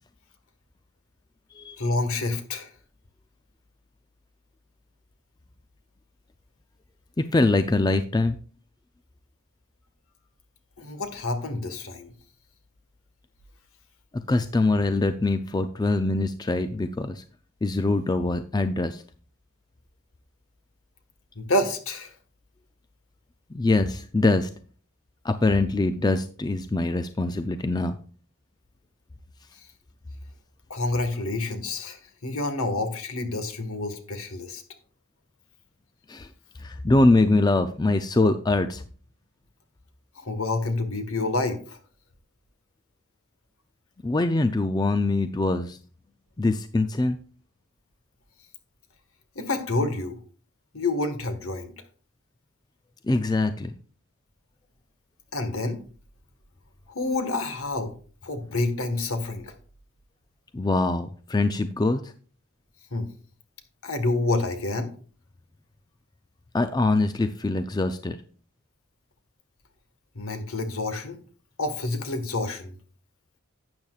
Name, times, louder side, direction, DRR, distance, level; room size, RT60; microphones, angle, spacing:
voice 1, 1.8-2.7 10.8-12.1 21.3-22.1 30.7-34.6 40.2-41.8 49.3-50.2 50.7-51.7 55.3-55.8 56.9-57.9 58.2-59.5 62.9-63.1 63.8-64.9 70.1-71.2 71.6-72.7, left 2 dB, 75° left, 7 dB, 1.5 m, -28 dB
voice 2, 7.2-8.4 14.3-17.2 17.6-19.0 23.5-24.5 25.2-28.0 36.1-36.3 36.6-38.8 44.0-45.8 46.4-47.2 53.1-53.7 60.5-62.1 66.5-68.2, left 2 dB, 20° left, 10 dB, 0.4 m, -23 dB
12.0 x 8.7 x 2.4 m, 0.41 s
head